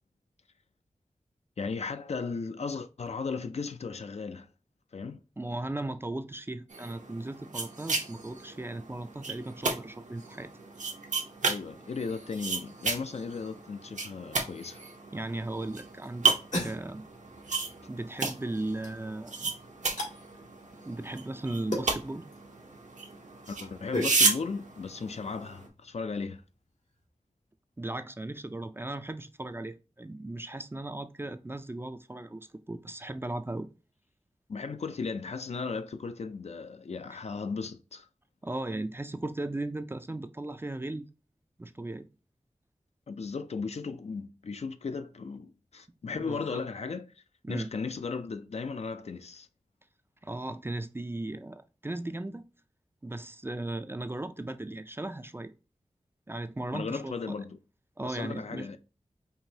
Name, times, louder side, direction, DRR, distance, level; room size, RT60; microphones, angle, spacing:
voice 1, 1.6-4.5 4.9-5.2 11.5-14.8 23.5-26.4 34.5-38.1 43.1-47.1 47.5-49.5 56.7-57.6 58.0-58.8, left 4 dB, 60° left, 0.4 m, -36 dB
voice 2, 5.4-10.5 15.1-16.3 16.6-17.0 17.9-19.5 20.8-22.3 27.8-33.7 38.4-41.1 41.6-42.1 46.1-46.6 47.4-47.7 50.2-52.5 53.0-55.5 56.3-57.4 58.0-58.8, right 2 dB, 20° right, 0.4 m, -37 dB
sound 1, 6.7-25.7, right 4 dB, 80° right, 0.8 m, -34 dB
sound 2, 15.1-27.0, left 1 dB, 85° left, 1.7 m, -41 dB
4.7 x 2.6 x 2.7 m
wide cardioid pair, 65°, 12 cm